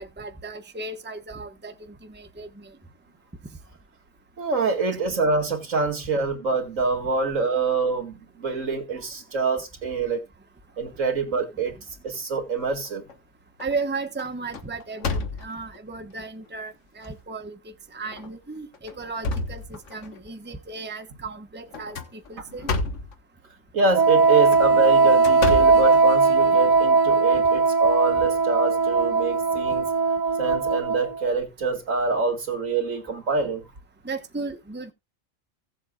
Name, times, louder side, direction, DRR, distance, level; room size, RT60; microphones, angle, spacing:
voice 1, 0.0-2.8 11.7-11.8 13.6-22.7 29.7-29.8 34.0-34.9, right 3 dB, 10° right, 1.0 m, -35 dB
voice 2, 4.4-10.2 10.8-11.8 12.0-13.0 23.7-29.9 30.4-33.6, right 4 dB, 75° right, 2.5 m, -26 dB
sound 1, 12.6-13.1 13.6-13.8 14.2-15.8 16.5-16.6 17.0-17.1 18.0-18.3 18.7-20.2 21.7-23.2 24.3-26.5, left 3 dB, 65° left, 1.5 m, -31 dB
Wind instrument woodwind instrument, 23.9-31.3, right 4 dB, 45° right, 0.7 m, -19 dB
16.5 x 7.8 x 2.3 m
omnidirectional pair, 1.4 m